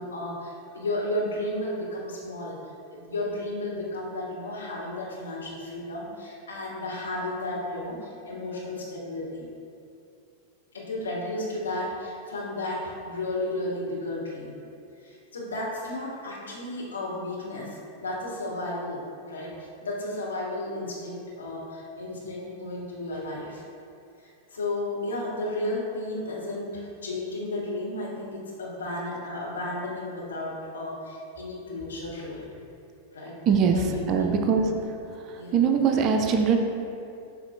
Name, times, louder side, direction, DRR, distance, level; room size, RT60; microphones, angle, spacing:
voice 1, 0.0-9.5 10.7-14.5 15.0-23.6 24.2-32.6 33.1-33.4 33.7-34.4 35.3-35.6, left 1 dB, 70° left, -4 dB, 1.3 m, -33 dB
voice 2, 33.5-34.7 35.2-36.6, right 6 dB, 35° right, 4 dB, 0.5 m, -22 dB
7.9 x 5.7 x 2.2 m, 2.5 s
figure-of-eight pair, 90°, 0 cm